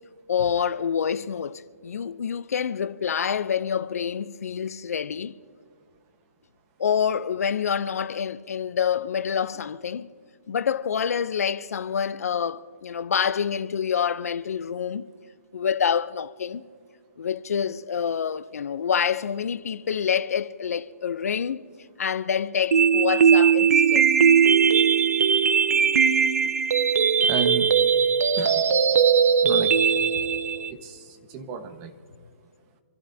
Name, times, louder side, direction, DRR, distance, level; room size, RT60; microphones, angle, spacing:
voice 1, 0.3-5.4 6.8-10.1 10.5-15.1 15.5-16.7 17.2-21.6 22.0-24.1, left 7 dB, 75° left, 0.7 m, -27 dB
sound 1, 22.7-30.7, right 6 dB, 80° right, 0.8 m, -19 dB
voice 2, 27.2-27.7 28.4-28.6 29.4-29.7 30.7-31.9, right 8 dB, 25° right, 1.3 m, -32 dB
27.0 x 14.0 x 2.8 m
hypercardioid pair, 150°, 8 cm